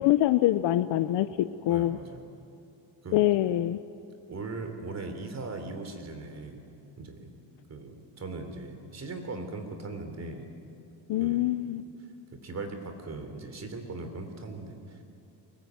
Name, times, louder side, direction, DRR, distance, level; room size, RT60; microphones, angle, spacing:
voice 1, 0.0-2.0 3.1-3.8 11.1-11.8, left 14 dB, 90° left, 12 dB, 0.7 m, -25 dB
voice 2, 1.7-2.2 3.0-3.3 4.3-6.6 7.0-7.3 7.7-10.5 11.2-11.5 12.4-15.0, right 3 dB, 40° right, 6 dB, 3.3 m, -39 dB
23.5 x 20.5 x 9.4 m, 2.7 s
cardioid pair, 135°, 42 cm